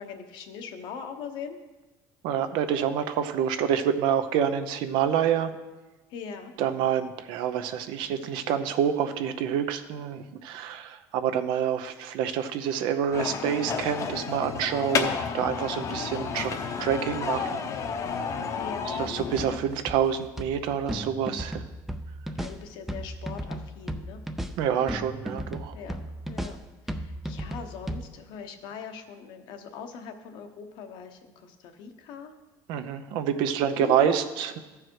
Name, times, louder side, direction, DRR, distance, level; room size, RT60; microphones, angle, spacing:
voice 1, 0.0-1.6 6.1-6.5 18.6-19.0 22.3-24.2 25.7-26.0 26.3-26.6 26.8-32.3 33.7-34.3, left 6 dB, 70° left, 6 dB, 1.0 m, -41 dB
voice 2, 2.2-5.5 6.6-17.6 18.9-21.6 24.6-25.7 32.7-34.6, right 8 dB, 75° right, 9 dB, 0.7 m, -27 dB
sound 1, 13.1-19.6, left 6 dB, 40° left, 0.8 m, -31 dB
sound 2, 19.1-28.0, right 1 dB, 5° right, 0.5 m, -36 dB
14.0 x 4.7 x 4.7 m, 1.2 s
cardioid pair, 125°, 8 cm